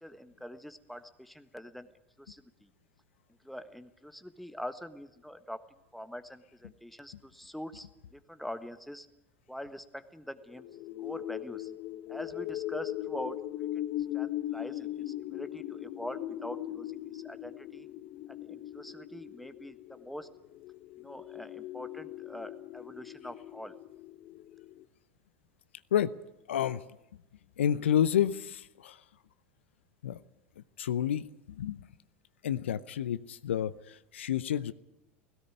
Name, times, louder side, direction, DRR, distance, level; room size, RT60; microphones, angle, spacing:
voice 1, 0.0-1.9 2.2-2.4 3.4-5.6 5.9-9.1 9.5-10.7 11.0-11.7 12.1-13.8 14.1-17.9 18.3-20.3 21.0-23.7, equal, ahead, 10 dB, 1.4 m, -44 dB
sound 1, 10.5-24.8, left 14 dB, 55° left, 1.0 m, -39 dB
voice 2, 26.5-26.8 27.6-29.0 30.0-30.2 30.8-31.8 32.4-34.7, left 10 dB, 80° left, 15 dB, 0.6 m, -29 dB
17.0 x 17.0 x 9.8 m, 0.89 s
hypercardioid pair, 80°, 6 cm